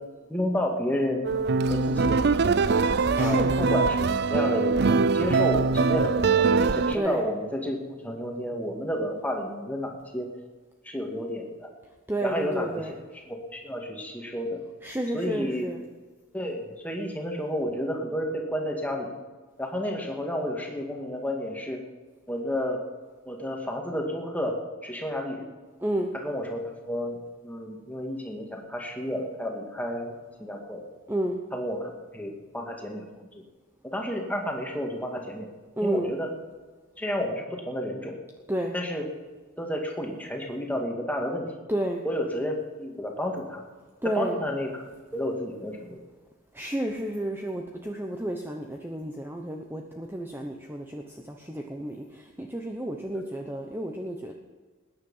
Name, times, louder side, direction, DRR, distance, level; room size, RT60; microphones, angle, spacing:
voice 1, 0.3-1.3 1.6-2.6 3.2-10.3 10.8-11.7 12.2-14.6 15.1-15.8 16.3-19.1 19.6-21.8 22.3-22.8 23.3-25.5 26.1-30.8 31.5-33.0 33.3-33.4 33.9-35.5 35.8-36.3 37.0-38.2 38.7-39.1 39.6-41.5 42.0-43.6 44.2-44.8 45.1-46.0, equal, 10° left, 1 dB, 2.1 m, -31 dB
sound 1, 1.2-7.0, right 4 dB, 50° right, 0.5 m, -22 dB
voice 2, 3.1-3.5 6.9-7.2 12.1-12.9 14.8-15.8 25.8-26.1 31.1-31.4 35.8-36.1 38.5-38.7 41.7-42.0 44.0-44.4 46.5-54.3, right 1 dB, 10° right, 2 dB, 0.9 m, -31 dB
20.0 x 9.7 x 5.6 m, 1.4 s
head